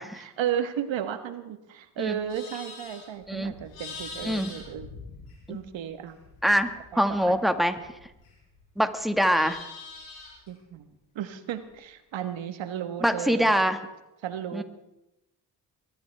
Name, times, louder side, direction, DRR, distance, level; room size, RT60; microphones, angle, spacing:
voice 1, 0.1-4.9 5.5-6.2 6.9-7.4 10.5-10.9 11.1-13.5 14.2-14.6, right 9 dB, 65° right, 10 dB, 1.5 m, -34 dB
Livestock farm animals working animals, 2.0-5.7 6.1-8.6 8.9-10.5, left 4 dB, 85° left, 5.2 m, -44 dB
voice 2, 6.4-7.8 8.8-9.6 13.0-13.8 14.5-14.6, equal, ahead, 7 dB, 1.8 m, -24 dB
23.0 x 13.5 x 3.5 m, 0.92 s
hypercardioid pair, 45°, 48 cm